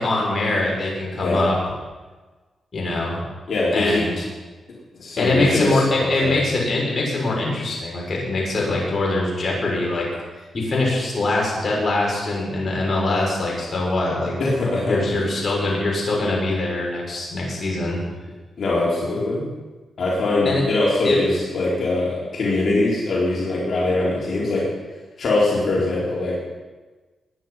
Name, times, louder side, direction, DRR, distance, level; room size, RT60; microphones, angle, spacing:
voice 1, 0.0-1.6 2.7-3.2 3.7-4.2 5.2-10.1 10.5-14.3 14.9-18.0 20.4-20.6 21.0-21.2, left 2 dB, 45° left, -3 dB, 6.2 m, -23 dB
voice 2, 3.5-4.1 4.9-6.4 14.4-15.2 18.6-19.5 20.0-24.7 25.2-26.4, left 2 dB, 60° left, -5 dB, 4.3 m, -22 dB
21.0 x 10.0 x 5.8 m, 1.3 s
cardioid pair, 80°, 0 cm